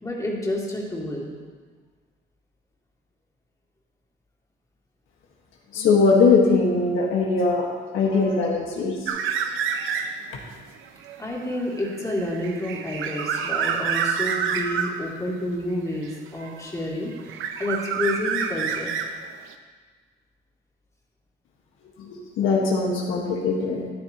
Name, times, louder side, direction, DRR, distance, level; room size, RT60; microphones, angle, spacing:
voice 1, 0.0-1.3 11.2-17.1 17.6-18.9, left 1 dB, 15° left, -4 dB, 2.8 m, -29 dB
voice 2, 5.7-7.7 7.9-9.1 9.4-9.5 9.8-9.9 22.0-23.8, left 4 dB, 85° left, -1 dB, 1.5 m, -21 dB
sound 1, 9.1-10.4 10.8-15.0 16.0-16.8 17.1-19.5, right 7 dB, 85° right, 0.7 m, -28 dB
13.5 x 9.4 x 3.0 m, 1.5 s
cardioid pair, 90°, 20 cm